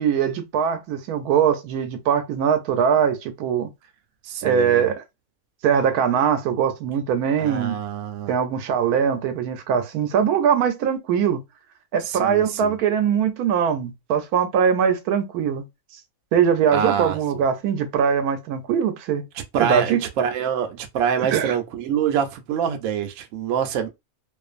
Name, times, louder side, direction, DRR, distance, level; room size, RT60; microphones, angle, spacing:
voice 1, 0.0-3.7 4.4-5.0 5.6-7.8 8.3-11.4 11.9-15.6 16.3-19.2 19.6-20.0 21.3-21.5, right 7 dB, 85° right, 1.1 m, -21 dB
voice 2, 4.2-4.9 7.4-8.3 12.1-12.8 16.7-17.2 19.3-23.9, right 8 dB, 70° right, 0.9 m, -25 dB
2.5 x 2.4 x 2.4 m
omnidirectional pair, 1.5 m